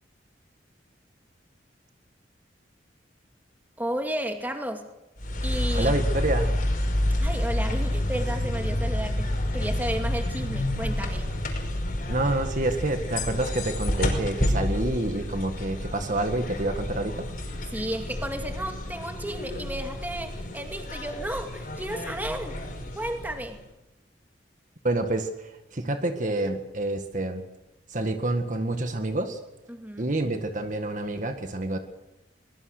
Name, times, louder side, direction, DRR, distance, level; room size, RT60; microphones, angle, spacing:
voice 1, 3.8-4.9 5.4-5.9 7.2-11.3 17.7-22.7 23.0-23.6 29.7-30.1, right 1 dB, 10° right, 4 dB, 2.3 m, -33 dB
sound 1, 5.2-23.6, left 1 dB, 50° left, 5.5 m, -29 dB
voice 2, 5.7-6.5 12.1-17.3 24.8-27.4 27.9-29.4 30.0-31.8, right 2 dB, 45° right, 6 dB, 1.8 m, -28 dB
23.5 x 21.5 x 6.7 m, 0.95 s
head